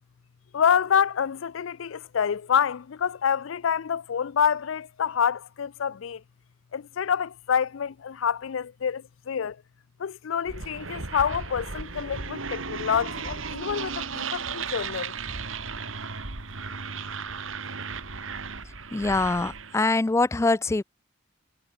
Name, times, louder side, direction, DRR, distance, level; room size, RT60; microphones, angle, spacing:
voice 1, 0.5-6.2 6.7-9.6 10.0-15.1, left 7 dB, 80° left, 0.4 m, -27 dB
sound 1, 10.5-19.9, right 5 dB, 85° right, 2.5 m, -35 dB
voice 2, 18.9-20.8, left 3 dB, 15° left, 0.3 m, -24 dB
head